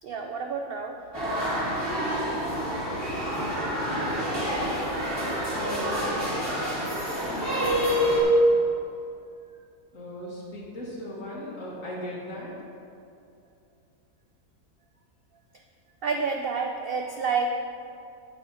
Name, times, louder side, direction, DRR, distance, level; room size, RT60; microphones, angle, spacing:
voice 1, 0.0-1.5 16.0-17.5, right 4 dB, 65° right, 3 dB, 0.5 m, -29 dB
sound 1, 1.1-8.2, equal, 15° right, 2.1 m, -28 dB
voice 2, 5.5-6.5 9.9-12.5, equal, 70° left, -4 dB, 2.2 m, -37 dB
9.0 x 7.7 x 4.1 m, 2.5 s
omnidirectional pair, 1.5 m